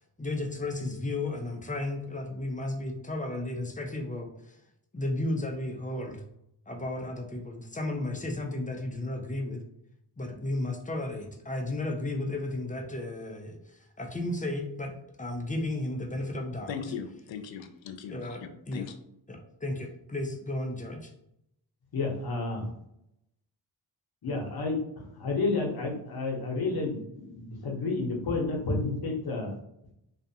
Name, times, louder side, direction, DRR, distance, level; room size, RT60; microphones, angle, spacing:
voice 1, 0.2-4.6 4.9-6.2 6.7-9.6 10.2-14.9 15.2-16.9 18.0-18.9 19.3-21.1, left 2 dB, 20° left, 3 dB, 0.5 m, -34 dB
voice 2, 16.7-18.9, left 7 dB, 75° left, 8 dB, 0.5 m, -39 dB
voice 3, 21.9-22.7 24.2-29.6, left 3 dB, 55° left, 0 dB, 0.9 m, -31 dB
2.4 x 2.3 x 2.7 m, 0.78 s
cardioid pair, 50°, 46 cm